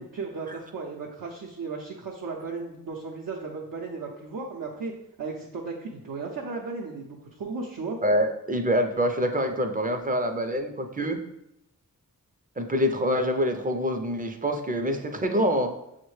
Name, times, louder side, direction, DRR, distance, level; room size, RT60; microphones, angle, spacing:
voice 1, 0.0-4.9 5.2-8.0, right 4 dB, 70° right, -2 dB, 0.6 m, -35 dB
voice 2, 8.0-11.2 12.6-15.7, equal, 25° right, 6 dB, 0.4 m, -25 dB
6.2 x 2.1 x 3.1 m, 0.83 s
wide cardioid pair, 60°, 35 cm